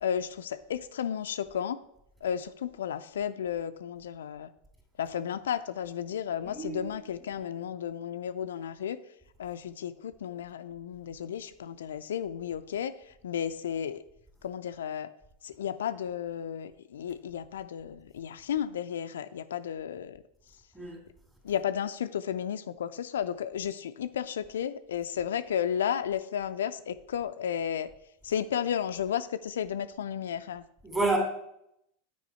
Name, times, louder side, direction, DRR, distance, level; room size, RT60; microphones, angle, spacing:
voice 1, 0.0-1.8 2.2-4.5 5.0-9.0 9.4-12.9 13.2-14.0 14.4-15.1 15.4-20.2 21.4-27.9 28.2-30.6, left 9 dB, 70° left, 11 dB, 0.3 m, -33 dB
voice 2, 6.4-6.9 20.7-21.0 30.8-31.2, right 3 dB, 15° right, 1 dB, 2.4 m, -29 dB
9.3 x 4.8 x 4.2 m, 0.79 s
figure-of-eight pair, 85°, 0 cm